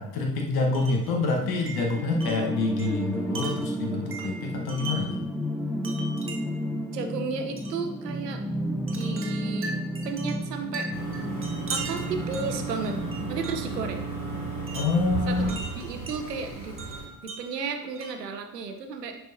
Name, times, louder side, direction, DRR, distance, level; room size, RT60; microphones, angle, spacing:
voice 1, 0.0-5.2 14.7-15.5, left 3 dB, 50° left, 1 dB, 1.3 m, -27 dB
Wind chime, 0.7-1.1 1.7-5.2 5.8-6.7 7.6-7.8 8.9-13.8 14.7-16.2 16.8-18.3, right 3 dB, 25° right, 1.3 m, -40 dB
sound 1, 1.4-13.4, equal, ahead, 0.6 m, -32 dB
voice 2, 6.9-8.4 8.9-9.7 10.0-10.9 11.7-13.0 13.3-14.1 15.3-16.8 17.2-19.2, right 5 dB, 80° right, 6 dB, 0.9 m, -33 dB
sound 2, 10.9-17.0, right 3 dB, 85° left, 2.4 m, -34 dB
10.5 x 4.5 x 2.7 m, 1.0 s
figure-of-eight pair, 50°, 48 cm